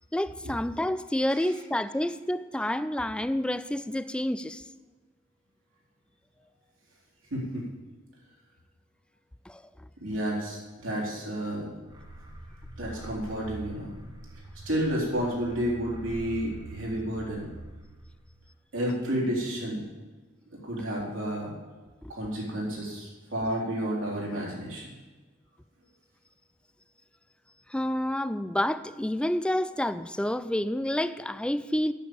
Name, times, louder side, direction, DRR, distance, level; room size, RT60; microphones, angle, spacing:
voice 1, 0.1-4.7 9.5-9.6 27.7-31.9, left 1 dB, 5° left, 14 dB, 0.3 m, -29 dB
voice 2, 7.3-7.6 10.0-11.7 12.8-14.0 14.7-17.4 18.7-19.8 20.5-21.5 22.1-24.9, equal, 75° right, -3 dB, 4.0 m, -31 dB
sound 1, 11.8-18.4, right 1 dB, 20° right, 1.3 m, -44 dB
8.9 x 7.2 x 8.7 m, 1.3 s
head